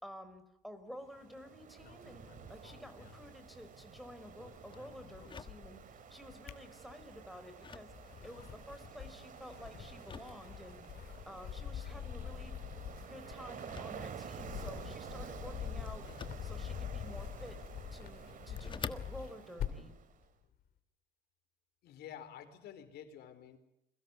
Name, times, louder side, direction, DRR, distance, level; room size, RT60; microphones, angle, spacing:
voice 1, 0.0-7.9 8.2-10.8 11.3-12.5 13.1-16.1 16.4-17.6 17.9-19.9, equal, ahead, 7 dB, 4.6 m, -51 dB
Ocean, 1.0-20.2, right 7 dB, 50° right, 2.5 m, -51 dB
sound 1, 1.8-4.0 4.3-5.9 6.2-7.3 7.8-20.0, left 9 dB, 60° left, 2.8 m, -45 dB
sound 2, 2.5-19.5, left 5 dB, 30° left, 1.5 m, -53 dB
voice 2, 21.8-23.6, left 9 dB, 75° left, 9 dB, 4.3 m, -50 dB
29.0 x 23.0 x 7.3 m, 0.85 s
cardioid pair, 110°, 17 cm